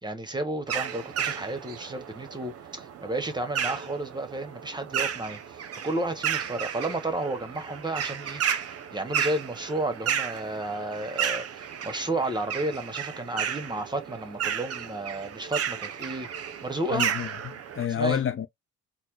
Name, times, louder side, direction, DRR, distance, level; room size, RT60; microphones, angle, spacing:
voice 1, 0.0-16.3 16.6-17.1 17.9-18.2, right 2 dB, 15° right, 1.0 m, -32 dB
sound 1, 0.7-17.9, right 8 dB, 50° right, 0.6 m, -33 dB
voice 2, 16.9-18.5, left 9 dB, 45° left, 0.6 m, -29 dB
4.1 x 2.1 x 3.1 m
cardioid pair, 90°, 30 cm